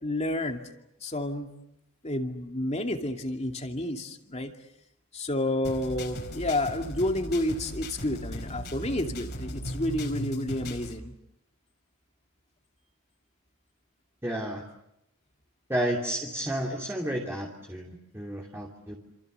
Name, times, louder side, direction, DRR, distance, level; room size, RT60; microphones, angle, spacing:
voice 1, 0.0-0.6 1.0-1.6 2.0-4.5 5.1-11.1, left 1 dB, 30° left, 4 dB, 2.5 m, -30 dB
sound 1, 5.6-11.0, equal, 50° left, 4.5 m, -37 dB
voice 2, 14.2-14.6 15.7-18.9, right 1 dB, 10° right, -1 dB, 3.0 m, -31 dB
28.5 x 28.0 x 6.8 m, 0.82 s
head